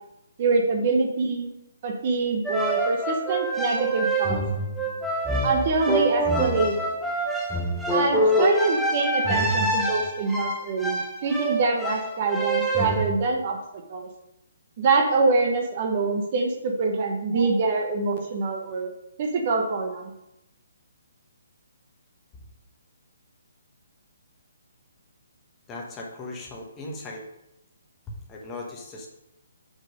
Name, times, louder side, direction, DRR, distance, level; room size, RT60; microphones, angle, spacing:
voice 1, 0.4-1.5 1.8-4.4 5.4-6.8 7.9-14.1 14.8-18.9 19.2-20.1, right 3 dB, 40° right, 3 dB, 1.0 m, -25 dB
sound 1, 2.5-13.1, right 1 dB, ahead, 0.9 m, -25 dB
voice 2, 25.7-27.2 28.1-29.1, left 2 dB, 20° left, -1 dB, 1.2 m, -38 dB
5.9 x 5.3 x 5.2 m, 0.85 s
figure-of-eight pair, 135°, 0 cm